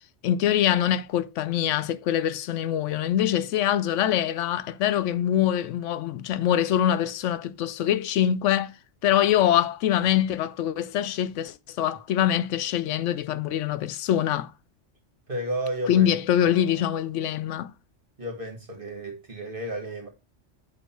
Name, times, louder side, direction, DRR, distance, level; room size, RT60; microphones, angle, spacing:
voice 1, 0.2-8.7 9.0-14.5 15.9-17.7, left 11 dB, 90° left, 0.9 m, -24 dB
voice 2, 15.3-16.1 16.4-16.9 18.2-20.1, right 1 dB, 45° right, 2.3 m, -33 dB
8.2 x 3.4 x 4.5 m
omnidirectional pair, 1.2 m